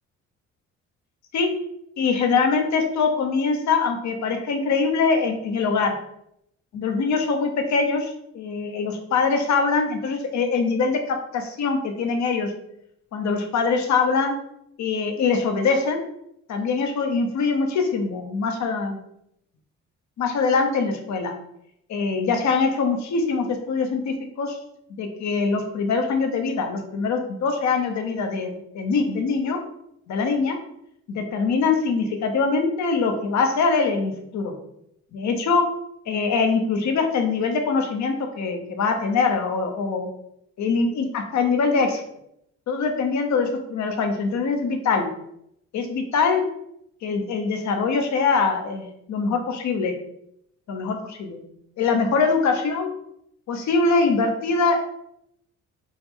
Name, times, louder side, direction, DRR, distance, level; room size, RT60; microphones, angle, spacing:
voice 1, 2.0-6.0 6.7-12.5 13.1-14.3 14.8-16.0 16.5-19.0 20.2-21.3 21.9-24.6 25.0-29.6 30.1-30.6 31.1-34.5 35.1-35.6 36.1-40.1 40.6-42.0 42.7-45.1 45.7-46.4 47.0-49.9 50.7-51.4 51.8-52.9 53.5-54.8, left 4 dB, 65° left, 5 dB, 1.0 m, -23 dB
6.2 x 2.3 x 3.7 m, 0.76 s
cardioid pair, 90°, 30 cm